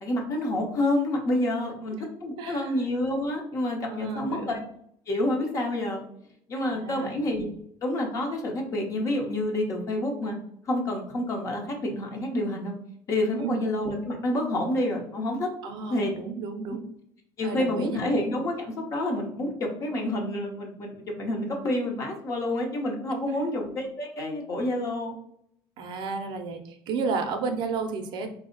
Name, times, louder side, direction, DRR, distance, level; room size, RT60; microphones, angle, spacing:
voice 1, 0.0-4.7 5.1-6.0 6.5-7.5 7.8-10.4 10.6-12.7 13.1-15.5 15.9-16.1 16.7-16.8 17.4-25.2, left 1 dB, 30° left, 2 dB, 0.7 m, -28 dB
voice 2, 2.4-2.7 3.9-4.5 6.6-7.2 13.3-13.6 15.6-16.8 17.4-18.0 23.3-23.5 25.8-28.3, right 4 dB, 50° right, 6 dB, 0.5 m, -32 dB
4.2 x 2.0 x 3.7 m, 0.70 s
cardioid pair, 175°, 10 cm